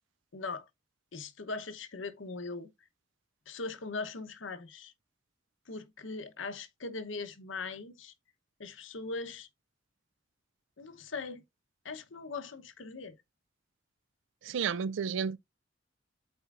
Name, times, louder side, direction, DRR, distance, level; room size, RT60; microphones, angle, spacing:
voice 1, 0.3-0.6 1.1-2.7 3.5-4.9 5.7-8.1 8.6-9.5 10.8-11.4 11.8-13.2, left 3 dB, 85° left, 0.9 m, -40 dB
voice 2, 14.4-15.4, right 6 dB, 80° right, 0.4 m, -31 dB
11.5 x 4.4 x 2.5 m
head